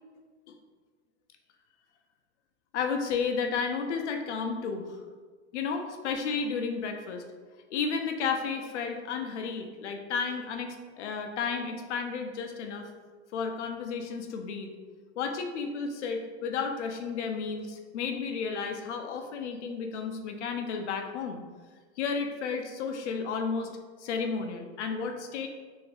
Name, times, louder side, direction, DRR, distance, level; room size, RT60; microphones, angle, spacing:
voice 1, 2.7-5.0 5.5-7.2 7.7-12.9 13.3-14.7 15.2-21.4 22.0-23.7 24.0-25.5, left 5 dB, 85° left, 4 dB, 0.5 m, -32 dB
2.7 x 2.5 x 3.2 m, 1.5 s
hypercardioid pair, 140°, 34 cm